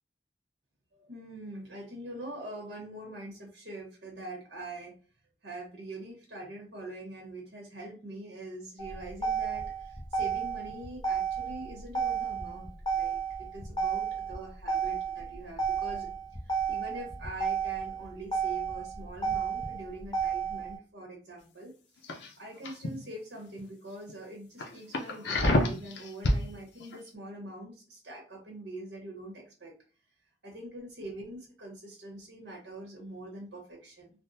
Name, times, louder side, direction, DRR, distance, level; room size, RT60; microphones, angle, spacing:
voice 1, 0.9-4.9 5.4-16.1 16.4-22.0 22.4-29.7 30.4-34.1, right 1 dB, 85° right, -1 dB, 1.1 m, -44 dB
Motor vehicle (road), 8.8-20.8, right 6 dB, 25° left, 0.5 m, -32 dB
sound 1, 22.0-22.9 23.4-23.6 24.1-24.2 24.6-26.4 26.8-27.0, left 1 dB, 80° left, 0.6 m, -28 dB
3.5 x 2.2 x 2.7 m, 0.37 s
head